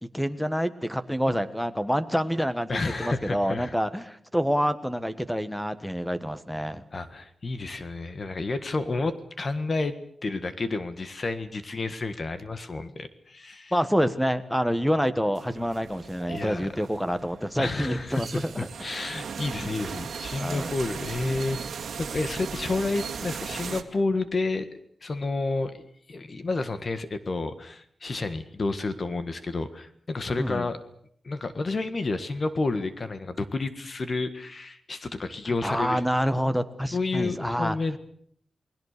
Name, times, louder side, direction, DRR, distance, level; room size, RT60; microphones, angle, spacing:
voice 1, 0.0-6.8 13.7-18.7 19.6-19.7 20.4-20.7 30.4-30.7 35.6-37.8, equal, 5° left, 12 dB, 1.4 m, -27 dB
voice 2, 2.7-3.7 6.9-9.9 10.2-13.7 16.3-16.7 17.6-18.2 18.6-21.7 22.0-24.7 25.0-30.8 31.2-36.0 36.9-38.0, left 3 dB, 35° left, 11 dB, 1.6 m, -30 dB
sound 1, 15.3-23.8, right 6 dB, 80° right, 1.9 m, -37 dB
29.0 x 20.5 x 6.8 m, 0.63 s
wide cardioid pair, 160°, 0 cm